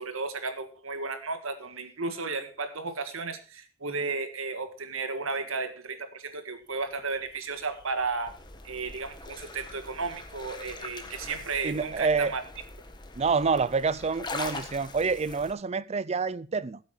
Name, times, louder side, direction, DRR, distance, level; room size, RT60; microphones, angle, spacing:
voice 1, 0.0-8.4 8.6-12.4, right 4 dB, 75° right, 1.7 m, -34 dB
sound 1, 6.8-15.5, left 3 dB, 20° left, 1.4 m, -43 dB
voice 2, 11.6-12.3 13.2-16.8, right 4 dB, 30° right, 0.5 m, -27 dB
15.0 x 8.4 x 4.8 m
head